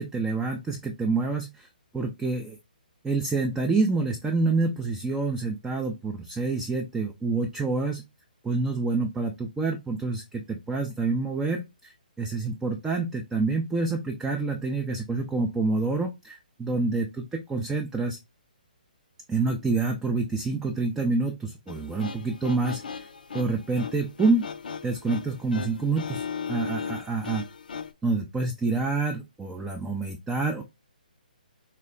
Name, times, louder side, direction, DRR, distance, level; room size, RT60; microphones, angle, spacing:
voice 1, 0.0-1.7 1.9-2.6 3.0-8.0 8.4-18.2 19.3-23.1 23.3-24.4 24.8-27.5 28.0-30.6, right 3 dB, 5° right, 3 dB, 0.3 m, -27 dB
sound 1, 21.7-27.9, left 6 dB, 65° left, 0.4 m, -37 dB
3.3 x 2.1 x 3.7 m, 0.22 s
figure-of-eight pair, 135°, 5 cm